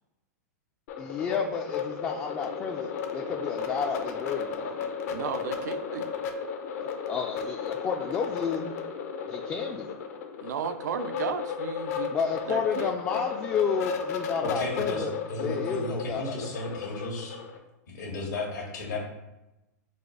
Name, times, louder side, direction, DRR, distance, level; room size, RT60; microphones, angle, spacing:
sound 1, 0.9-17.6, left 6 dB, 60° left, 0.7 m, -34 dB
voice 1, 1.0-4.8 6.8-8.7 9.2-9.9 12.1-16.5, left 6 dB, 20° left, 1 dB, 0.4 m, -31 dB
voice 2, 5.1-6.1 10.4-12.1 12.5-13.2, right 7 dB, 80° right, 10 dB, 0.4 m, -34 dB
voice 3, 14.4-17.4 17.9-19.0, left 2 dB, 80° left, -3 dB, 1.3 m, -34 dB
4.1 x 2.4 x 4.7 m, 0.98 s
hypercardioid pair, 125°, 9 cm